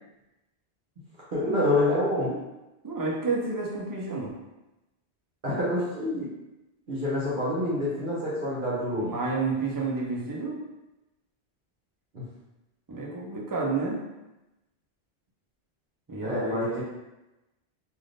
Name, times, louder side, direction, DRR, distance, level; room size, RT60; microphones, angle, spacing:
voice 1, 1.3-2.4 5.4-6.3 6.9-9.1 12.1-12.3 16.2-16.8, left 1 dB, 55° right, -8 dB, 1.0 m, -27 dB
voice 2, 2.8-4.3 9.0-10.6 12.9-14.0 16.1-16.8, right 3 dB, 25° right, -4 dB, 0.5 m, -30 dB
3.4 x 2.6 x 2.5 m, 0.98 s
omnidirectional pair, 1.1 m